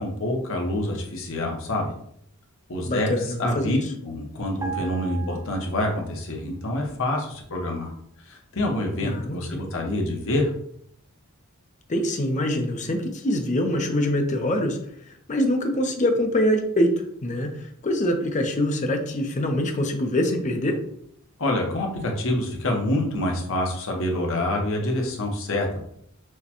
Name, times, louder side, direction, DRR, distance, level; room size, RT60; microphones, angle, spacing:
voice 1, 0.0-1.9 2.7-3.8 4.0-7.9 8.3-10.5 21.4-25.8, left 1 dB, 65° left, 1 dB, 0.9 m, -26 dB
voice 2, 2.8-3.8 9.0-9.6 11.9-14.8 15.3-20.8, left 1 dB, 35° left, 4 dB, 0.6 m, -24 dB
sound 1, 4.6-6.2 6.5-6.7, right 6 dB, 15° right, 0.5 m, -37 dB
6.4 x 2.2 x 2.9 m, 0.68 s
head